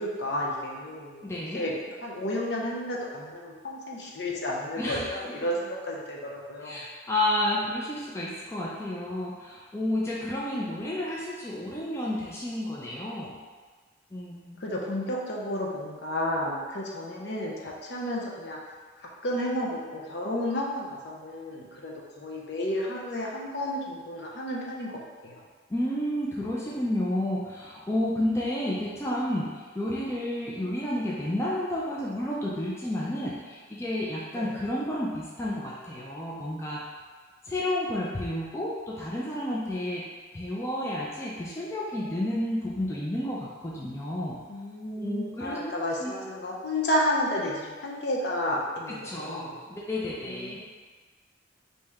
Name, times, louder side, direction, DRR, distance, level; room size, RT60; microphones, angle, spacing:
voice 1, 0.0-1.7 2.0-6.8 14.6-18.6 19.2-24.9 25.2-25.4 34.3-34.5 44.5-49.5 50.2-50.6, left 1 dB, 60° left, -2 dB, 0.6 m, -32 dB
voice 2, 1.2-1.6 4.8-5.0 6.6-13.3 14.1-14.6 25.7-36.8 37.4-40.0 40.3-44.4 45.0-45.8 46.0-46.1 48.9-50.6, left 1 dB, 15° left, -6 dB, 0.4 m, -31 dB
3.2 x 2.7 x 3.5 m, 1.4 s
head